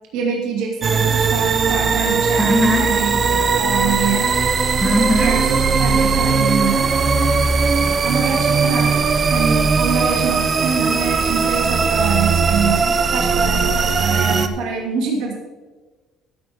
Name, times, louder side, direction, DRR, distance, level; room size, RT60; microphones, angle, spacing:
voice 1, 0.1-4.3 5.2-7.1 7.7-15.3, right 5 dB, 80° right, -1 dB, 2.5 m, -25 dB
sound 1, 0.8-14.5, right 5 dB, 25° right, 0.7 m, -18 dB
voice 2, 2.4-2.9 4.8-5.3, equal, ahead, 3 dB, 1.3 m, -18 dB
14.0 x 9.6 x 3.6 m, 1.3 s
cardioid pair, 165°, 0 cm